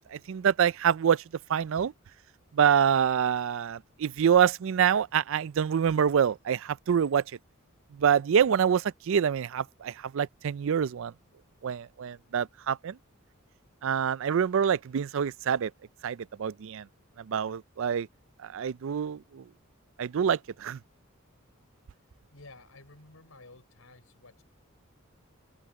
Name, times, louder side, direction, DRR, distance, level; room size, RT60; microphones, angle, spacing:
voice 1, 0.1-1.2 1.5-1.9 2.5-7.2 7.9-11.1 11.6-13.0 13.8-15.7 16.0-16.9 17.2-18.1 18.4-19.4 20.0-20.8, right 8 dB, 65° right, 0.4 m, -26 dB
voice 2, 22.3-24.4, left 2 dB, 80° left, 5.0 m, -52 dB
head